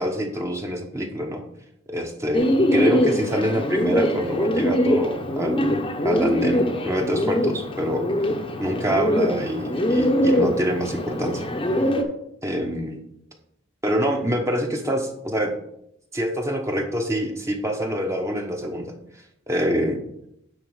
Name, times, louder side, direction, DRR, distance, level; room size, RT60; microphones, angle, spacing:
voice 1, 0.0-1.4 1.9-8.1 8.6-11.5 12.4-13.0 13.8-15.5 16.1-18.9 19.5-20.0, equal, 15° right, 2 dB, 0.9 m, -26 dB
Bird, 2.3-12.0, equal, 25° left, 0.8 m, -23 dB
9.1 x 4.1 x 5.5 m, 0.77 s
head